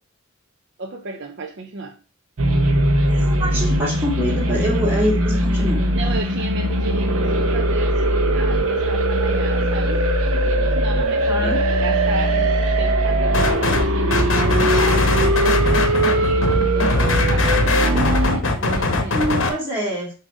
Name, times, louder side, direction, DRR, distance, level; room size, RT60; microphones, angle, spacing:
voice 1, 0.8-2.0 5.9-10.1 10.4-17.9 18.5-19.4, right 3 dB, 50° right, 0.6 m, -33 dB
sound 1, 2.4-18.4, right 1 dB, 75° right, 0.9 m, -20 dB
voice 2, 3.2-5.8 11.3-11.6 19.1-20.1, equal, 10° right, 2.1 m, -24 dB
sound 2, 13.3-13.8 14.1-19.5, left 2 dB, 60° left, 0.9 m, -21 dB
7.1 x 2.8 x 5.0 m
head